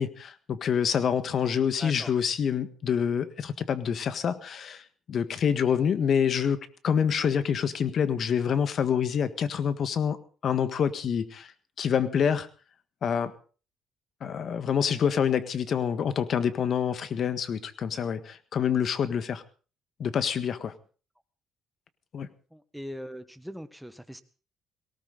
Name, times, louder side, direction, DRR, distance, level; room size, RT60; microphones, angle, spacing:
voice 1, 0.0-10.2 10.4-11.5 11.8-12.5 13.0-13.3 14.2-19.4 20.0-20.7 22.1-22.3, left 7 dB, 55° left, 12 dB, 1.6 m, -27 dB
voice 2, 1.8-2.1 22.5-24.2, equal, ahead, 11 dB, 1.5 m, -41 dB
18.5 x 18.0 x 4.1 m, 0.39 s
cardioid pair, 100°, 0 cm